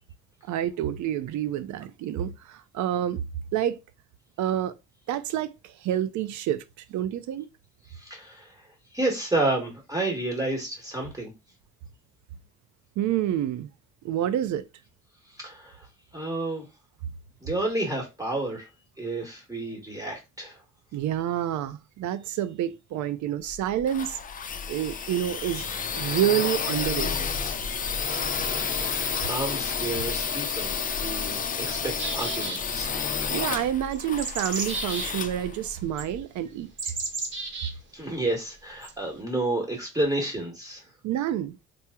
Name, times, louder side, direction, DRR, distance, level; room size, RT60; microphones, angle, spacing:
voice 1, 0.4-3.2 3.5-3.8 4.4-4.8 5.1-6.6 6.9-7.5 13.0-13.7 14.0-14.6 20.9-24.2 24.7-27.1 33.3-36.9 41.0-41.7, right 11 dB, 70° right, 0.5 m, -28 dB
voice 2, 7.9-8.7 8.9-11.3 15.3-15.9 16.1-16.7 17.4-18.7 19.0-20.6 28.1-32.9 37.9-40.9, right 2 dB, 10° right, 1.1 m, -31 dB
sound 1, 23.5-36.2, left 6 dB, 30° left, 0.4 m, -30 dB
sound 2, 32.0-32.9 33.9-35.1 36.0-36.1 36.8-37.7 38.8-38.9, right 3 dB, 40° right, 0.8 m, -33 dB
2.9 x 2.0 x 3.4 m
cardioid pair, 90°, 30 cm